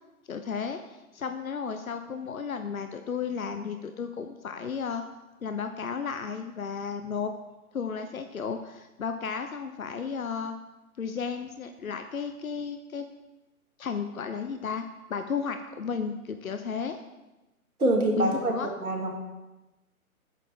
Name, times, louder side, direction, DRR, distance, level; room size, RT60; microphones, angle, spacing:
voice 1, 0.3-5.0 5.4-7.3 7.7-10.5 11.0-13.1 13.8-17.0 18.1-18.7, left 6 dB, 70° left, 8 dB, 0.9 m, -33 dB
voice 2, 17.8-18.5 18.8-19.1, right 1 dB, 75° right, 0 dB, 2.8 m, -24 dB
13.5 x 9.2 x 3.7 m, 1.1 s
figure-of-eight pair, 130°, 43 cm